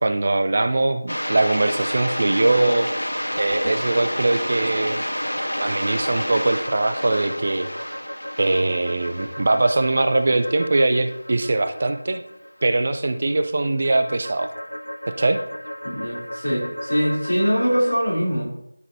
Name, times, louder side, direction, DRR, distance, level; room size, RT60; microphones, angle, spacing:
voice 1, 0.0-2.9 3.4-5.0 5.6-7.7 8.4-12.2 12.6-14.5 15.2-15.4, right 2 dB, 40° right, 8 dB, 0.5 m, -21 dB
sound 1, 1.1-17.9, equal, 85° left, 0.4 m, -30 dB
voice 2, 15.8-18.5, equal, 60° left, -4 dB, 3.2 m, -22 dB
12.0 x 5.1 x 2.7 m, 0.80 s
figure-of-eight pair, 165°, 0 cm